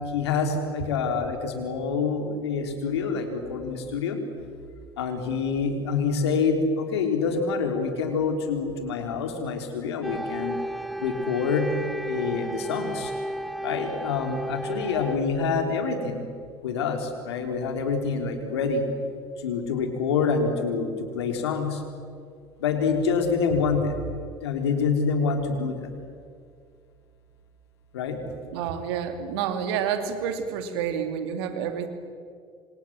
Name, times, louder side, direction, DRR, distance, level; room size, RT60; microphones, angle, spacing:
voice 1, 0.0-4.2 5.0-10.6 11.0-11.7 12.1-13.1 13.6-16.2 16.6-18.8 19.4-21.8 22.6-24.0 24.4-25.9 27.9-28.2, left 5 dB, 90° left, 5 dB, 3.8 m, -26 dB
sound 1, 10.0-15.2, equal, ahead, 1.7 m, -33 dB
voice 2, 28.5-31.9, right 8 dB, 80° right, 8 dB, 2.8 m, -29 dB
27.5 x 26.0 x 7.5 m, 2.3 s
hypercardioid pair, 65°, 13 cm